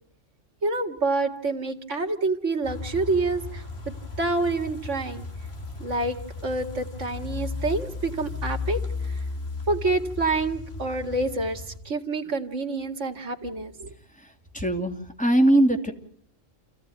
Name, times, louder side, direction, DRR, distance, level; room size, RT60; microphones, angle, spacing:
voice 1, 0.6-3.6 4.2-5.3 5.8-6.2 6.4-8.8 9.7-13.9, right 3 dB, 70° right, 5 dB, 2.4 m, -27 dB
sound 1, 2.6-11.8, left 4 dB, 55° left, 2.8 m, -35 dB
voice 2, 14.5-15.9, right 1 dB, 5° left, 3 dB, 2.8 m, -21 dB
29.0 x 16.5 x 9.4 m, 0.65 s
omnidirectional pair, 1.3 m